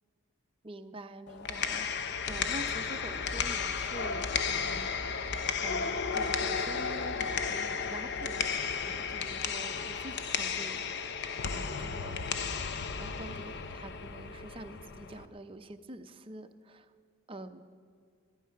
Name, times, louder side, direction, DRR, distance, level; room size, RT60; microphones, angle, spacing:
voice 1, 0.6-5.2 5.6-8.6 8.8-10.9 11.5-12.3 13.0-16.9 17.3-17.6, right 1 dB, 25° right, 7 dB, 0.6 m, -46 dB
sound 1, 1.3-15.3, left 6 dB, 50° left, 0.6 m, -34 dB
14.5 x 13.0 x 5.7 m, 2.1 s
head